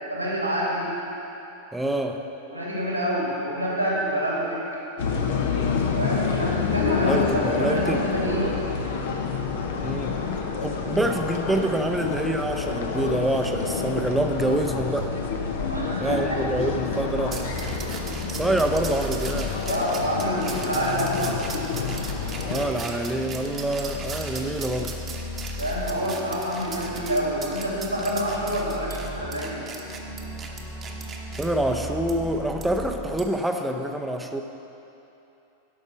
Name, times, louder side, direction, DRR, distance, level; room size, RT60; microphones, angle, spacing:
voice 1, 0.1-0.9 2.4-4.6 5.9-8.5 15.7-16.4 19.7-21.4 25.6-29.6, equal, 90° right, -4 dB, 2.2 m, -27 dB
voice 2, 1.7-2.2 6.9-8.0 9.8-10.2 10.6-15.1 16.0-17.4 18.3-19.6 22.4-24.9 31.4-34.4, right 1 dB, 5° right, 4 dB, 0.7 m, -26 dB
sound 1, 5.0-22.7, left 5 dB, 55° left, 0.9 m, -28 dB
sound 2, 13.4-33.2, left 2 dB, 30° left, 1.9 m, -36 dB
sound 3, 17.3-31.5 32.1-32.2 32.6-32.7 33.2-33.4, right 5 dB, 25° right, 1.0 m, -38 dB
11.5 x 5.4 x 6.0 m, 2.9 s
figure-of-eight pair, 90°, 0 cm